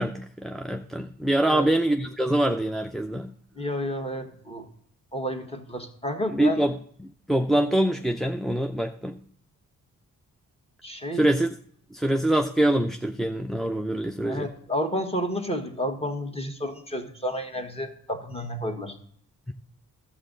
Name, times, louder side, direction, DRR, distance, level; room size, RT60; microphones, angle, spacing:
voice 1, 0.0-3.3 6.3-6.8 7.3-9.2 11.1-11.5 11.9-14.5 19.5-19.6, right 1 dB, ahead, 0.4 m, -24 dB
voice 2, 3.5-4.7 5.1-6.6 10.8-11.2 14.2-19.0, equal, 15° left, 1.4 m, -31 dB
12.5 x 7.3 x 3.9 m
supercardioid pair, 50°, 37 cm